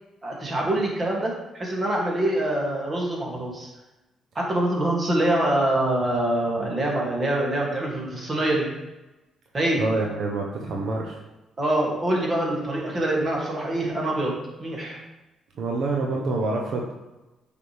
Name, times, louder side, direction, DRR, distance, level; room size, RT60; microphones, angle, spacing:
voice 1, 0.2-3.7 4.3-8.7 9.5-9.8 11.6-15.0, right 1 dB, 35° right, -2 dB, 2.4 m, -25 dB
voice 2, 9.8-11.2 15.6-16.9, right 3 dB, 70° right, 0 dB, 0.9 m, -26 dB
8.5 x 5.3 x 3.4 m, 1.1 s
cardioid pair, 90°, 0 cm